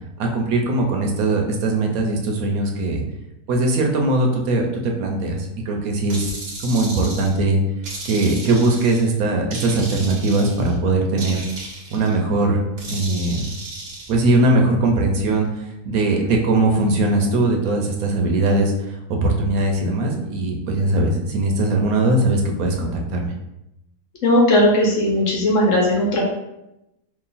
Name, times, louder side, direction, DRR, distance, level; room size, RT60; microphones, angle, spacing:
voice 1, 0.2-3.0 3.5-6.3 6.6-7.6 8.0-11.4 11.9-13.5 14.1-23.3, right 2 dB, 75° right, 2 dB, 1.1 m, -20 dB
sound 1, 6.1-7.4 7.8-9.1 9.5-10.7 11.2-12.1 12.8-14.1, right 2 dB, 55° right, 0.8 m, -34 dB
voice 2, 24.2-26.2, left 1 dB, 60° left, -3 dB, 1.1 m, -17 dB
3.0 x 2.5 x 3.9 m, 0.89 s
omnidirectional pair, 1.6 m